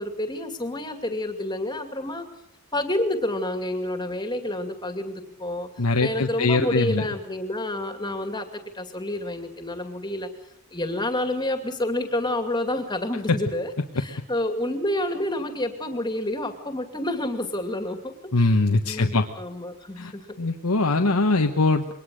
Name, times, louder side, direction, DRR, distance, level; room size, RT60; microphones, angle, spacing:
voice 1, 0.0-2.3 2.7-5.7 6.0-10.3 10.7-18.6 18.8-20.3, left 1 dB, 20° left, 7 dB, 2.5 m, -29 dB
voice 2, 5.8-7.0 18.3-19.3 20.0-20.1 20.4-21.9, left 2 dB, 80° left, 4 dB, 1.3 m, -22 dB
22.5 x 19.0 x 6.5 m, 0.73 s
head